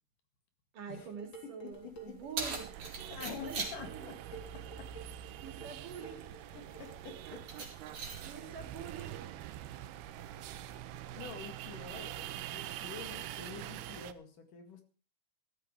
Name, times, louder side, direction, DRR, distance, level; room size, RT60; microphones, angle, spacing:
voice 1, 0.7-2.7 3.5-4.1 5.4-6.3 8.2-9.2, right 7 dB, 60° right, 5 dB, 4.1 m, -46 dB
Dishes pots and pans, 0.9-7.5, right 4 dB, 30° left, 3.7 m, -52 dB
voice 2, 1.6-2.2 3.1-4.2 4.5-4.9 6.8-7.7 8.3-8.6 10.2-14.8, left 6 dB, 65° left, 6 dB, 3.4 m, -48 dB
Keys jangling, 1.7-12.7, right 4 dB, 45° right, 4.5 m, -47 dB
sound 1, 2.4-14.1, right 12 dB, 90° right, 2.9 m, -45 dB
15.0 x 13.5 x 4.8 m, 0.36 s
omnidirectional pair, 4.4 m